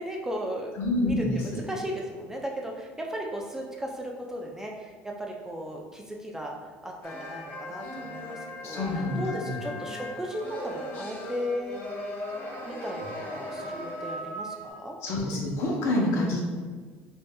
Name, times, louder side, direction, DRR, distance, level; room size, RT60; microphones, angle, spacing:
voice 1, 0.0-0.8 1.0-6.5 6.8-11.8 12.6-15.0, equal, 10° right, 0 dB, 0.4 m, -36 dB
voice 2, 0.8-1.6 8.6-9.6 15.0-16.4, left 1 dB, 60° left, -1 dB, 0.9 m, -27 dB
sound 1, 7.0-14.7, left 1 dB, 35° left, 1.2 m, -38 dB
4.9 x 2.6 x 2.3 m, 1.5 s
supercardioid pair, 105°, 5 cm